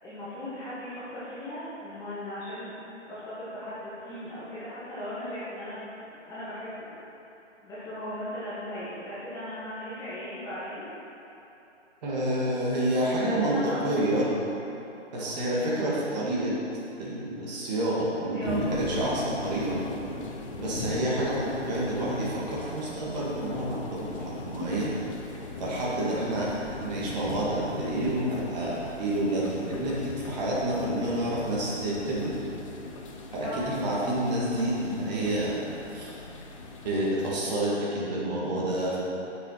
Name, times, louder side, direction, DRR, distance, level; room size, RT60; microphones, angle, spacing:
voice 1, 0.0-2.7 3.1-6.9 7.6-10.9 12.9-13.8 15.1-15.6 18.3-18.8 20.6-21.0 25.9-26.2 33.4-33.7, left 1 dB, 10° left, -12 dB, 1.4 m, -38 dB
voice 2, 12.0-14.3 15.1-16.6 17.0-19.8 20.6-24.9 25.6-32.3 33.3-35.6 35.9-36.1 36.8-39.0, right 1 dB, 35° right, -6 dB, 2.2 m, -29 dB
sound 1, 18.5-37.4, left 3 dB, 25° left, 0.8 m, -39 dB
8.2 x 7.2 x 5.8 m, 3.0 s
figure-of-eight pair, 150°, 37 cm